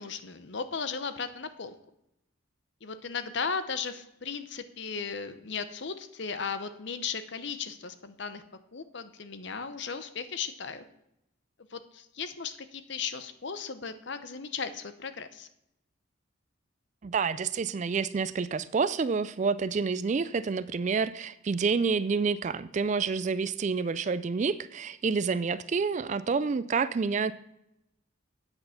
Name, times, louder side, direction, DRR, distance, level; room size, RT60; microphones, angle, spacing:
voice 1, 0.0-1.7 2.8-8.4 8.7-10.8 11.7-15.5, left 5 dB, 55° left, 11 dB, 0.7 m, -36 dB
voice 2, 17.0-27.3, right 5 dB, 35° right, 16 dB, 0.3 m, -28 dB
8.8 x 7.8 x 5.7 m, 0.84 s
head